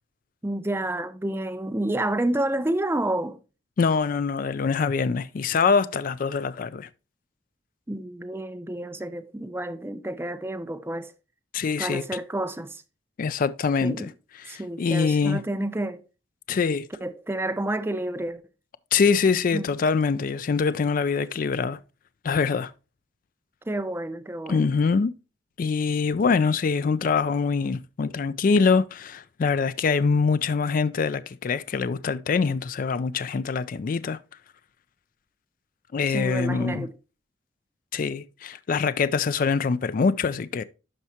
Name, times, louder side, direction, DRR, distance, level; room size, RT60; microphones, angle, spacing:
voice 1, 0.4-3.4 7.9-11.1 11.8-12.8 13.8-14.1 14.5-16.0 17.0-18.4 19.5-19.7 23.7-24.7 36.1-36.9, right 1 dB, 15° right, 0.6 m, -29 dB
voice 2, 3.8-6.9 11.5-12.0 13.2-14.1 14.5-15.4 16.5-16.9 18.9-21.8 22.2-22.7 24.5-25.1 25.6-34.2 35.9-36.9 37.9-40.6, left 5 dB, 50° left, 0.4 m, -24 dB
12.0 x 4.6 x 2.8 m
head